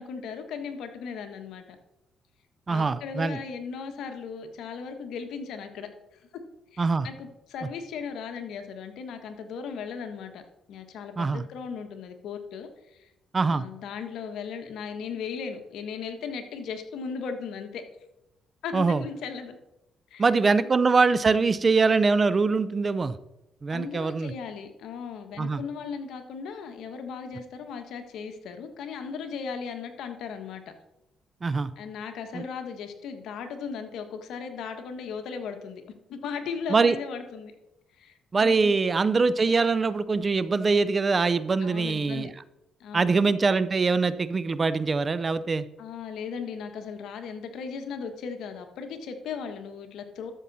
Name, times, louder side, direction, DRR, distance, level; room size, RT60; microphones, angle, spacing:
voice 1, 0.0-1.7 2.7-5.9 6.3-6.4 6.7-10.4 10.7-13.1 13.4-17.8 18.6-19.6 20.1-20.3 23.7-30.6 31.8-35.8 36.1-37.5 38.0-38.1 38.4-38.8 41.6-42.3 42.8-43.1 45.8-50.3, left 6 dB, 80° left, 6 dB, 1.3 m, -37 dB
voice 2, 2.7-3.4 6.8-7.1 11.2-11.4 13.3-13.6 18.7-19.0 20.2-23.2 23.6-24.3 25.4-25.6 31.4-31.7 32.3-32.4 36.7-37.0 38.3-42.3 42.9-45.7, right 4 dB, 35° right, 15 dB, 0.5 m, -23 dB
12.5 x 7.0 x 4.1 m, 0.92 s
cardioid pair, 90°, 0 cm